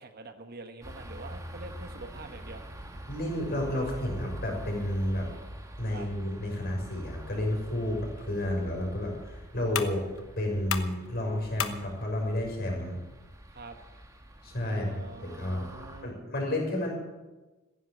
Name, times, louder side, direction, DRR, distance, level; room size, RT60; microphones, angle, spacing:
voice 1, 0.0-2.6 5.9-6.1 13.5-13.8 14.6-16.2, right 3 dB, 50° right, 7 dB, 1.3 m, -45 dB
sound 1, 0.8-16.0, equal, 15° right, 1.6 m, -45 dB
voice 2, 3.1-5.3 5.8-10.0 10.4-13.0 14.4-15.7 16.0-16.9, left 1 dB, 50° left, 0 dB, 6.2 m, -31 dB
sound 2, 8.2-15.2, left 8 dB, 85° left, 1.1 m, -40 dB
16.0 x 10.5 x 8.4 m, 1.2 s
head